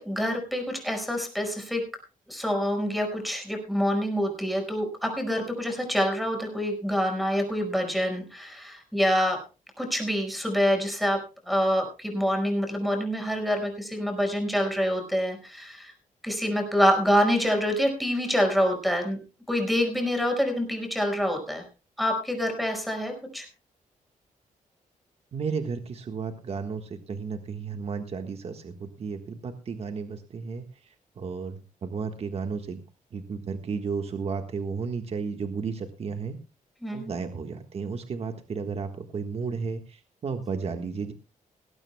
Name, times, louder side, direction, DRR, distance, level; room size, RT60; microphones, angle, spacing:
voice 1, 0.0-1.8 2.3-9.4 9.8-11.2 11.5-15.9 16.2-19.2 19.5-21.6 22.0-23.5 36.8-37.1, equal, ahead, 4 dB, 5.1 m, -26 dB
voice 2, 25.3-32.8 33.1-36.4 36.9-41.1, right 5 dB, 45° right, 6 dB, 1.5 m, -33 dB
19.5 x 16.5 x 2.3 m, 0.31 s
wide cardioid pair, 140°, 14 cm